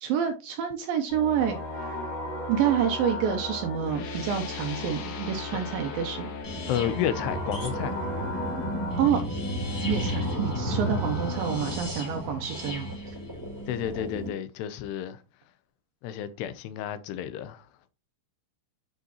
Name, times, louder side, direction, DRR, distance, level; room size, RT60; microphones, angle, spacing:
voice 1, 0.0-1.6 2.5-6.3 9.0-9.2 9.9-12.9, right 8 dB, 80° right, 2.2 m, -28 dB
sound 1, 1.1-11.7, left 2 dB, 30° left, 2.9 m, -36 dB
sound 2, 3.9-9.3, left 6 dB, 65° left, 2.1 m, -45 dB
sound 3, 6.4-14.3, equal, 5° left, 1.7 m, -33 dB
voice 2, 6.7-8.0 13.7-15.2 16.0-17.7, left 10 dB, 80° left, 2.7 m, -31 dB
9.4 x 5.0 x 2.9 m
omnidirectional pair, 4.9 m